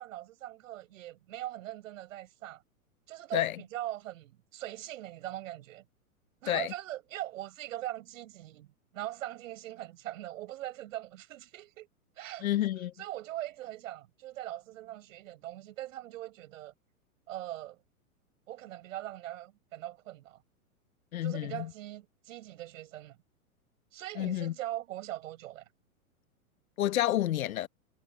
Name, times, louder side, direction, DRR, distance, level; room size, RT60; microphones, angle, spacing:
voice 1, 0.0-2.6 3.1-5.8 6.4-11.9 12.2-12.5 13.0-16.7 17.3-17.8 18.5-20.4 21.2-23.2 23.9-25.7, right 14 dB, 60° right, 6.7 m, -41 dB
voice 2, 12.4-12.9 21.1-21.7 24.2-24.5 26.8-27.7, left 13 dB, 65° left, 1.2 m, -29 dB
hypercardioid pair, 110°, 44 cm